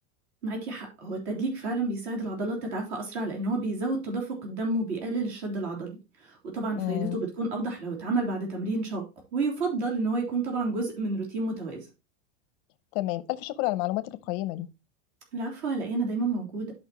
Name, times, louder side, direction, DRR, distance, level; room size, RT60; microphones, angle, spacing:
voice 1, 0.4-9.1 9.3-11.9 15.3-16.7, right 2 dB, 60° right, 3.4 m, -30 dB
voice 2, 6.8-7.2 12.9-14.7, left 17 dB, 35° left, 0.5 m, -30 dB
11.5 x 5.3 x 2.9 m
supercardioid pair, 165°, 38 cm